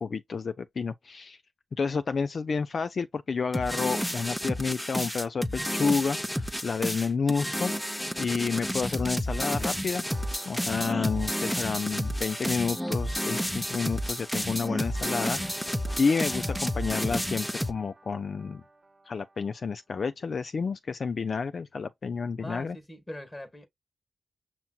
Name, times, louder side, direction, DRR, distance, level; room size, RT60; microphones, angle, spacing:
voice 1, 0.0-1.4 1.7-7.7 8.2-10.0 10.5-18.6 19.1-22.8, left 5 dB, 60° left, 0.3 m, -30 dB
sound 1, 3.5-17.7, equal, 5° left, 0.7 m, -31 dB
sound 2, 10.0-19.6, right 2 dB, 35° right, 0.8 m, -49 dB
voice 2, 22.4-23.7, left 1 dB, 25° left, 1.4 m, -41 dB
5.7 x 2.8 x 2.3 m
cardioid pair, 60°, 0 cm